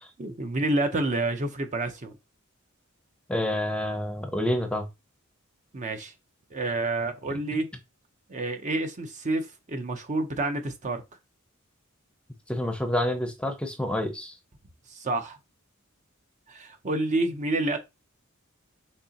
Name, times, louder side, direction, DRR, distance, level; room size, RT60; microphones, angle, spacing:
voice 1, 0.2-2.2 5.7-6.1 6.5-7.7 8.3-11.0 14.9-15.4 16.5-17.8, right 2 dB, 35° right, 0.7 m, -28 dB
voice 2, 3.3-4.9 12.5-14.4, left 1 dB, 5° left, 0.7 m, -28 dB
6.5 x 2.9 x 2.9 m
head